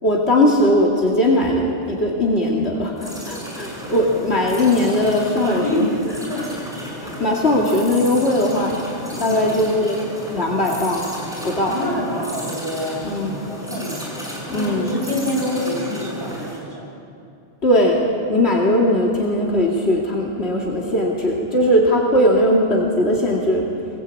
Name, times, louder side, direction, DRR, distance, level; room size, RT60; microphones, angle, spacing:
voice 1, 0.0-5.8 7.0-10.0 10.3-11.0 11.4-11.7 13.0-13.4 14.5-14.9 17.6-18.0 18.3-23.7, left 1 dB, 70° left, -3 dB, 2.8 m, -19 dB
sound 1, 3.0-16.6, equal, 5° right, 6.1 m, -33 dB
voice 2, 5.4-6.6 9.2-9.6 11.7-14.1 14.5-16.9, left 1 dB, 20° right, -2 dB, 6.0 m, -27 dB
23.0 x 21.5 x 8.5 m, 2.5 s
omnidirectional pair, 1.1 m